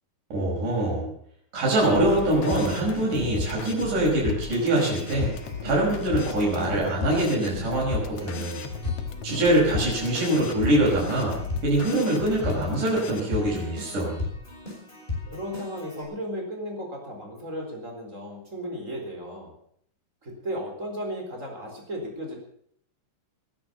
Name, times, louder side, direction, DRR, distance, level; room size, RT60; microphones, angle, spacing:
voice 1, 0.3-1.1 1.5-5.3 5.6-8.6 9.2-11.4 11.6-14.2, right 1 dB, 65° right, -4 dB, 7.0 m, -24 dB
Keyboard (musical), 1.7-16.0, left 3 dB, 15° left, 6.1 m, -36 dB
sound 1, 2.0-13.2, left 5 dB, 55° left, 2.1 m, -36 dB
voice 2, 15.3-19.5 20.2-22.4, equal, 20° right, 2 dB, 4.2 m, -35 dB
19.5 x 10.5 x 6.8 m, 0.66 s
omnidirectional pair, 3.8 m